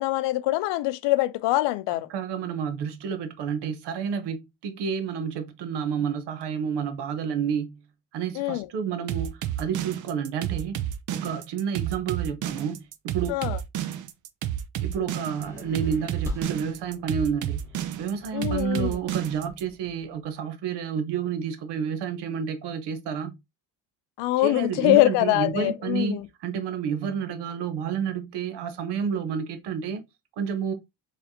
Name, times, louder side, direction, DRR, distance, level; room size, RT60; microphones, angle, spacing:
voice 1, 0.0-2.1 8.4-8.7 13.3-13.6 18.3-19.0 24.2-26.3, left 17 dB, 85° left, 0.6 m, -24 dB
voice 2, 2.1-7.8 8.1-10.8 11.1-13.3 14.8-17.7 18.0-23.3 24.4-30.0 30.4-30.7, right 7 dB, 75° right, 1.0 m, -30 dB
sound 1, 9.1-19.6, right 11 dB, 50° right, 0.5 m, -31 dB
sound 2, 15.4-20.2, equal, 5° right, 2.1 m, -42 dB
4.2 x 3.4 x 2.7 m
cardioid pair, 145°, 41 cm